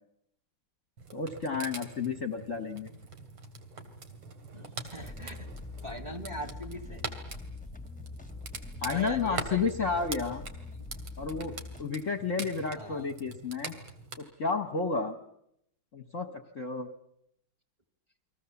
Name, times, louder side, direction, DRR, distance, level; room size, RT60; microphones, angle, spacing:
sound 1, 1.0-14.2, right 4 dB, 80° right, 3.6 m, -44 dB
voice 1, 1.1-2.9 8.8-10.4 11.2-13.8 14.2-15.2 15.9-16.9, left 4 dB, 45° left, 9 dB, 1.3 m, -32 dB
voice 2, 4.5-5.5 5.8-7.0 8.8-10.3 12.8-13.1, equal, 15° right, 9 dB, 2.1 m, -41 dB
sound 2, 4.9-11.8, left 4 dB, 5° left, 1.4 m, -44 dB
30.0 x 22.5 x 7.1 m, 0.74 s
omnidirectional pair, 2.3 m